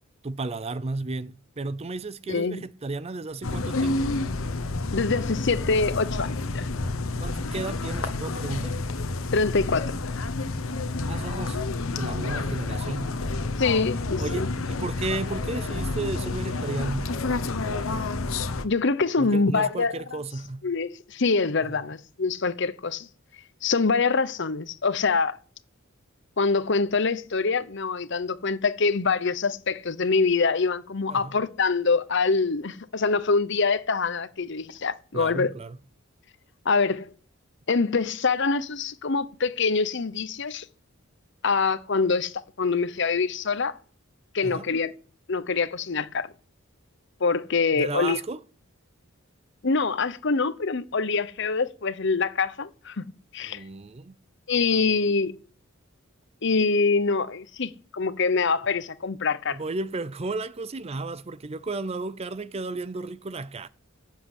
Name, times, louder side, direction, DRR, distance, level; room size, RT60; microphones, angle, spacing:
voice 1, 0.2-4.1 7.2-8.8 10.8-11.6 11.9-13.1 14.2-17.2 19.2-20.7 21.7-21.8 31.1-31.4 35.1-35.8 44.4-44.7 47.7-48.4 53.4-54.2 59.5-63.7, right 3 dB, 30° right, 0.5 m, -33 dB
voice 2, 2.3-2.6 4.9-6.7 9.3-10.0 13.6-14.5 18.6-20.2 20.6-23.1 23.6-25.4 26.4-35.5 36.6-37.1 37.7-40.6 41.4-43.8 44.3-44.9 45.3-46.3 47.2-48.2 49.6-53.1 53.3-53.6 54.5-55.3 56.4-59.6, left 4 dB, 60° left, 0.9 m, -25 dB
raw recital quiet, 3.4-18.7, left 3 dB, 90° left, 1.1 m, -29 dB
12.0 x 7.5 x 8.1 m
head